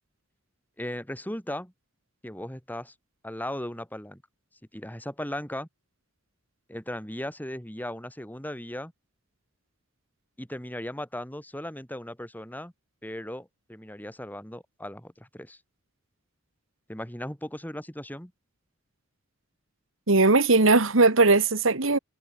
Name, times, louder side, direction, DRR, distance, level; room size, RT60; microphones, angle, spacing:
voice 1, 0.8-1.7 2.2-2.9 3.2-4.2 4.7-5.7 6.7-8.9 10.4-12.7 13.0-15.6 16.9-18.3, left 1 dB, 10° left, 6.0 m, -37 dB
voice 2, 20.1-22.0, right 3 dB, 75° right, 1.8 m, -19 dB
head